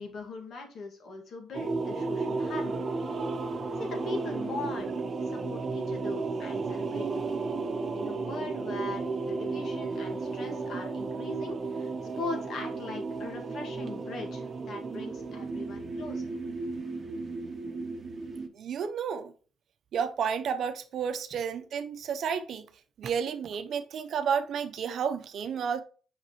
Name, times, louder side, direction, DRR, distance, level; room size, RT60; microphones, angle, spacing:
voice 1, 0.0-2.9 3.8-5.0 5.3-7.4 7.9-16.3, left 3 dB, 60° left, 1.9 m, -40 dB
sound 1, 1.5-18.5, right 3 dB, 35° right, 0.9 m, -33 dB
voice 2, 18.5-19.3 19.9-22.7 23.0-25.8, right 7 dB, 60° right, 0.7 m, -31 dB
6.1 x 5.1 x 3.0 m
cardioid pair, 110°, 0 cm